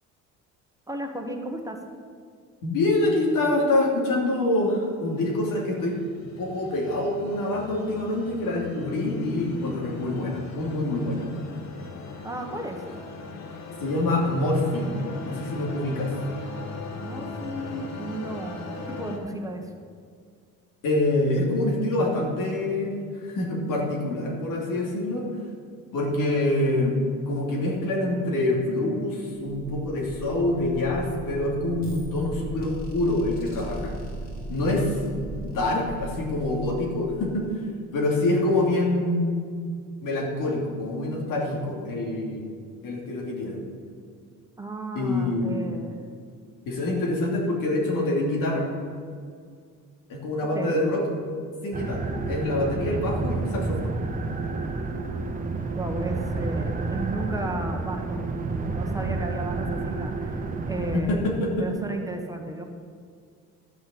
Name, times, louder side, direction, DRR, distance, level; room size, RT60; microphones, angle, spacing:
voice 1, 0.9-1.8 12.2-12.8 17.0-19.7 44.6-46.1 50.5-50.8 55.8-62.6, right 2 dB, 10° right, 2 dB, 1.3 m, -34 dB
voice 2, 2.6-6.0 6.4-11.3 13.8-15.0 15.2-16.1 20.8-25.2 25.9-26.9 27.3-34.0 34.5-34.9 35.4-37.5 37.9-39.4 40.0-42.5 42.8-43.6 44.9-45.6 46.7-48.6 50.1-51.0 51.6-54.0 60.9-61.7, left 2 dB, 85° left, -2 dB, 3.0 m, -26 dB
sound 1, 5.1-19.2, left 3 dB, 60° left, 1.8 m, -39 dB
sound 2, 29.3-37.8, right 1 dB, 30° left, 2.9 m, -38 dB
sound 3, 51.7-61.0, right 3 dB, 25° right, 1.0 m, -30 dB
11.5 x 6.4 x 7.7 m, 2.1 s
cardioid pair, 125°, 32 cm